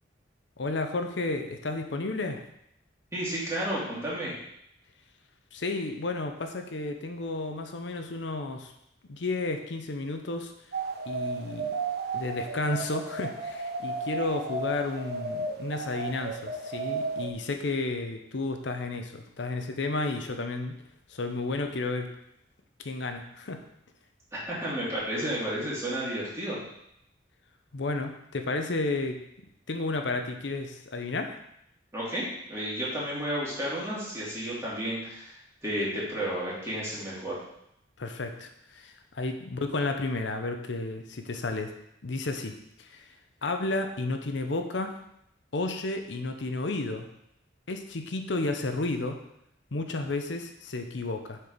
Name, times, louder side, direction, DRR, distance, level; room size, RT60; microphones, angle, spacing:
voice 1, 0.6-2.4 5.5-8.7 9.1-10.5 11.1-11.7 12.1-20.7 21.1-22.1 22.8-23.6 27.7-29.2 29.7-31.3 38.0-41.7 42.0-42.5 42.8-43.0 43.4-45.0 45.5-47.1 47.7-49.2 49.7-51.4, left 2 dB, 70° left, 6 dB, 0.7 m, -32 dB
voice 2, 3.1-4.3 24.3-26.6 31.9-32.2 32.5-35.3 35.6-37.4, right 1 dB, 15° right, -7 dB, 2.4 m, -32 dB
sound 1, 10.7-17.3, right 3 dB, 55° right, 0.7 m, -34 dB
6.7 x 4.5 x 5.1 m, 0.78 s
head